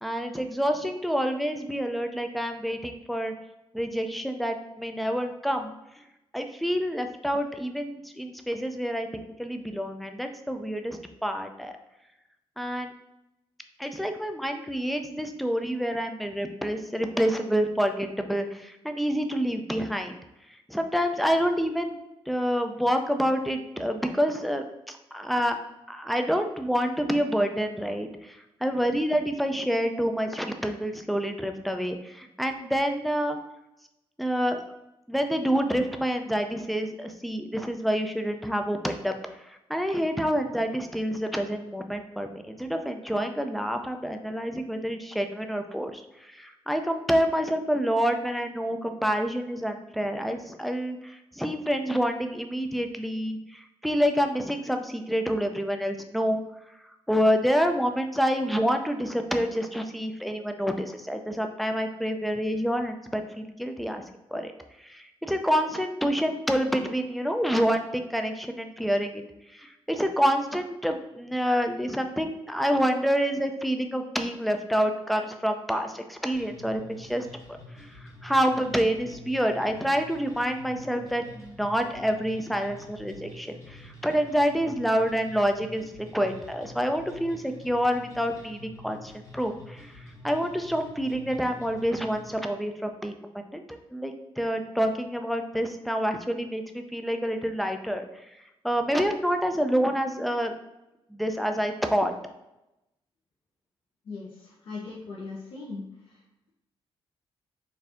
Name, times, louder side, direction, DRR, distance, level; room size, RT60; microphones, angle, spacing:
voice 1, 0.0-3.3 3.7-6.0 6.3-9.1 9.4-11.8 12.6-12.9 13.8-20.2 20.5-22.0 22.3-25.6 25.9-33.4 34.2-34.6 35.1-56.4 56.7-64.0 64.3-64.5 64.8-100.5 101.1-102.1, equal, ahead, 5 dB, 0.3 m, -28 dB
sound 1, 76.3-92.3, left 1 dB, 30° left, 1.0 m, -47 dB
voice 2, 104.1-105.8, left 3 dB, 65° left, -6 dB, 0.9 m, -39 dB
4.3 x 2.6 x 3.5 m, 0.91 s
wide cardioid pair, 140°, 10 cm